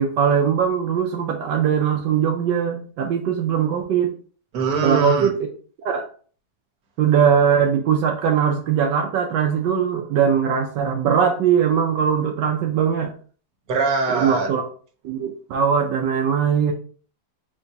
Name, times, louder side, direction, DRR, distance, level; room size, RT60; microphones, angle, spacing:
voice 1, 0.0-4.1 4.8-5.3 5.8-6.0 7.0-13.1 14.1-14.6 15.0-16.7, right 7 dB, 85° right, 3 dB, 1.2 m, -20 dB
voice 2, 4.5-5.3 13.7-14.5, right 4 dB, 65° right, 0 dB, 1.5 m, -22 dB
3.8 x 2.7 x 4.5 m, 0.43 s
omnidirectional pair, 1.9 m